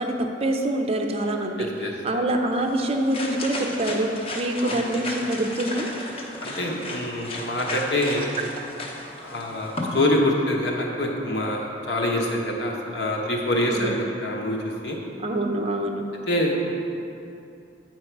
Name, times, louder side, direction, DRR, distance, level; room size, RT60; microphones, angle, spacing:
voice 1, 0.0-1.7 2.0-5.9 13.5-13.9 15.2-16.0, right 1 dB, 35° right, 3 dB, 0.5 m, -25 dB
voice 2, 1.6-2.2 4.6-4.8 6.4-8.3 9.2-15.0 16.3-16.7, left 1 dB, 65° left, -1 dB, 1.1 m, -25 dB
sound 1, 2.5-10.1, left 1 dB, 30° left, 0.8 m, -34 dB
9.0 x 4.7 x 4.5 m, 2.7 s
head